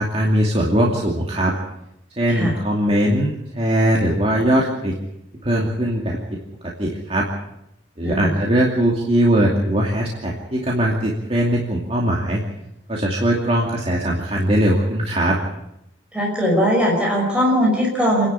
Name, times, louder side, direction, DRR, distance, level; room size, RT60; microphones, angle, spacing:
voice 1, 0.0-1.5 2.2-5.0 5.4-7.3 8.0-12.4 12.9-15.4, right 1 dB, 35° right, -3 dB, 2.6 m, -20 dB
voice 2, 8.0-8.3 16.1-18.3, equal, 5° right, -3 dB, 5.6 m, -19 dB
27.5 x 11.0 x 8.5 m, 0.83 s
head